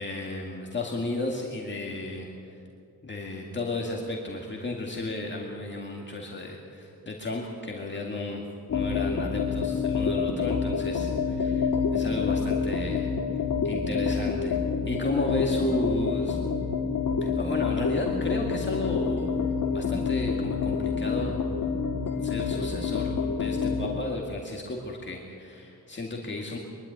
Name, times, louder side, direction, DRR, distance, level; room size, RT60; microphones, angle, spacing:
voice 1, 0.0-2.5 3.0-8.4 8.7-13.1 13.6-14.6 14.9-16.4 17.2-19.4 19.6-21.4 22.2-26.6, left 2 dB, 30° left, -1 dB, 2.1 m, -33 dB
sound 1, 8.7-24.0, left 5 dB, 60° left, 2.0 m, -27 dB
23.5 x 12.0 x 9.5 m, 2.6 s
wide cardioid pair, 115°, 37 cm